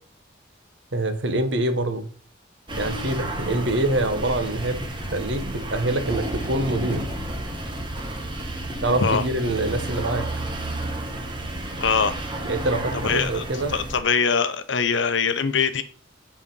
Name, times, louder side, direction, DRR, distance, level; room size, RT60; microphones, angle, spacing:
voice 1, 0.9-2.1 2.8-7.0 8.8-10.3 12.5-13.7, right 2 dB, 65° right, 9 dB, 1.2 m, -25 dB
sound 1, 2.7-14.0, right 1 dB, 25° right, 1.2 m, -31 dB
voice 2, 11.8-12.2 13.0-13.4 13.7-15.8, left 5 dB, 70° left, 10 dB, 0.7 m, -22 dB
7.7 x 4.9 x 5.5 m, 0.41 s
head